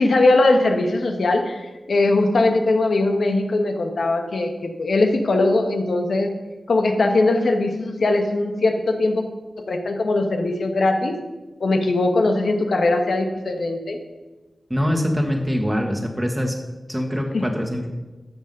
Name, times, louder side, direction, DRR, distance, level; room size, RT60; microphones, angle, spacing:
voice 1, 0.0-6.3 6.7-9.3 9.7-11.2 11.6-14.0 17.3-17.4, left 2 dB, 75° left, 4 dB, 1.4 m, -20 dB
voice 2, 14.7-16.6 16.9-17.9, equal, 5° right, 3 dB, 1.6 m, -23 dB
13.0 x 7.2 x 5.4 m, 1.2 s
wide cardioid pair, 115°, 0 cm